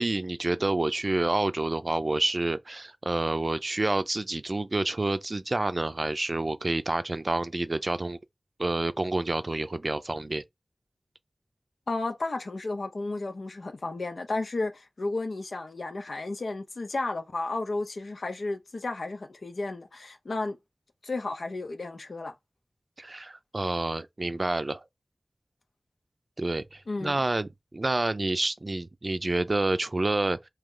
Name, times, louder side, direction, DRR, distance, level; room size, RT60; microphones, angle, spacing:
voice 1, 0.0-8.2 8.6-10.4 23.0-24.8 26.4-30.4, right 2 dB, 50° right, 0.4 m, -28 dB
voice 2, 11.9-20.6 21.0-22.3 26.9-27.2, left 2 dB, 85° left, 0.7 m, -33 dB
3.1 x 2.8 x 3.7 m
wide cardioid pair, 45°, 0 cm